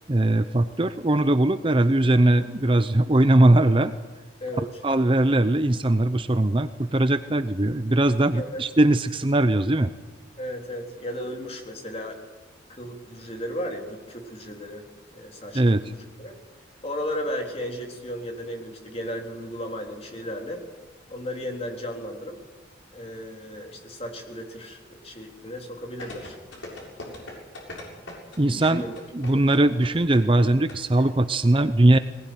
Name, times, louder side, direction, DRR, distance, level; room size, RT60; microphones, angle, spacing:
voice 1, 0.1-3.9 4.8-9.9 15.5-15.8 28.4-28.8 29.1-32.0, right 1 dB, 25° right, 11 dB, 0.6 m, -20 dB
voice 2, 8.3-8.6 10.4-12.2 12.7-14.9 15.1-15.6 15.9-16.3 16.8-20.6 21.1-22.4 22.9-26.4 27.2-27.4 28.4-28.9 29.3-29.5, equal, 30° left, 2 dB, 3.6 m, -35 dB
sound 1, 26.0-31.0 31.3-31.4, left 2 dB, 80° left, 7.1 m, -39 dB
20.0 x 19.5 x 9.4 m, 1.3 s
head